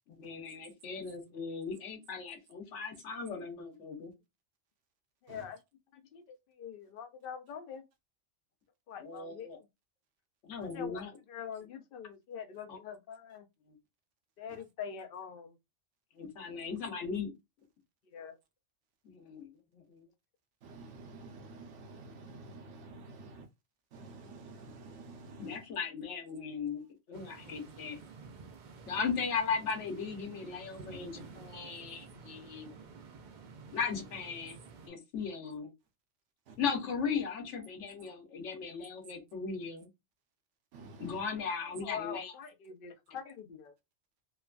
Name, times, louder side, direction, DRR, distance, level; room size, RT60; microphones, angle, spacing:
voice 1, 0.1-4.1 9.0-9.6 10.4-11.1 12.7-12.8 13.7-13.8 16.2-17.3 19.0-19.5 19.7-20.1 25.4-28.0 28.9-32.7 33.7-35.7 36.6-39.9 41.0-42.3, left 5 dB, 85° left, 1.1 m, -37 dB
voice 2, 5.2-5.6 5.9-7.8 8.9-9.7 10.6-13.5 14.4-15.6 18.1-18.4 41.8-43.7, left 7 dB, 60° left, 0.7 m, -44 dB
voice 3, 20.6-23.5 23.9-25.6 28.9-29.0 36.5-36.6 40.7-41.2, right 3 dB, 90° right, 1.0 m, -50 dB
sound 1, 27.1-34.9, right 5 dB, 55° right, 0.5 m, -51 dB
3.0 x 2.2 x 2.4 m
omnidirectional pair, 1.2 m